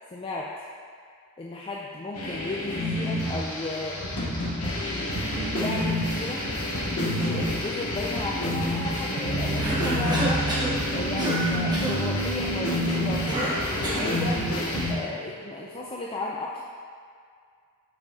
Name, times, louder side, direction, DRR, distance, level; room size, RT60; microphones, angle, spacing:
voice 1, 0.1-0.5 1.4-4.0 4.8-6.4 7.0-10.4 10.9-14.4 14.9-16.6, left 3 dB, 25° left, -3 dB, 0.4 m, -34 dB
sound 1, 2.1-14.9, left 1 dB, 85° left, 1.1 m, -28 dB
sound 2, 5.2-15.9, right 4 dB, 80° right, 0.5 m, -35 dB
Cough, 9.6-10.8 11.2-11.4 11.7-12.0 13.3-14.1, right 1 dB, 20° right, 1.1 m, -29 dB
8.3 x 5.1 x 2.7 m, 2.2 s
head